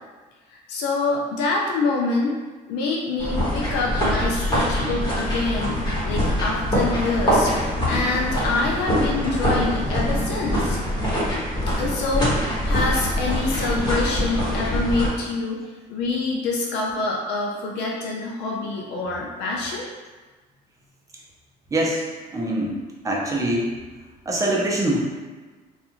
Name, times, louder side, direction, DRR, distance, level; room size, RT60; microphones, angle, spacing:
voice 1, 0.5-2.4 2.7-7.5 7.9-10.8 11.7-19.9, left 3 dB, 85° left, -1 dB, 0.4 m, -26 dB
sound 1, 3.2-15.1, equal, 25° left, 1.3 m, -24 dB
voice 2, 21.7-22.0 22.3-23.7 24.3-25.0, right 1 dB, 20° right, -3 dB, 0.6 m, -23 dB
2.4 x 2.4 x 2.9 m, 1.3 s
cardioid pair, 110°, 17 cm